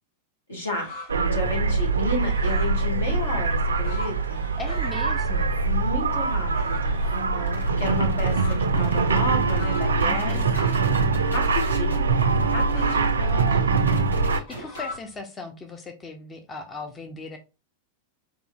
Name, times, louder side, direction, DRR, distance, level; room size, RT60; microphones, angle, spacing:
voice 1, 0.5-0.9 1.3-4.4 5.6-10.4 11.2-12.2 12.4-13.9, left 1 dB, 70° left, 0 dB, 1.6 m, -32 dB
sound 1, 0.7-1.2 1.5-5.0 5.3-11.8 12.1-15.2, left 2 dB, 55° left, 1.7 m, -42 dB
sound 2, 1.1-14.4, right 4 dB, 70° right, 0.4 m, -23 dB
voice 2, 4.6-5.6 10.0-10.5 13.2-14.0 14.3-17.4, left 4 dB, 20° left, 5 dB, 0.5 m, -38 dB
sound 3, 7.4-15.0, left 1 dB, 90° left, 1.0 m, -39 dB
5.0 x 2.6 x 2.3 m, 0.29 s
figure-of-eight pair, 90°, 0 cm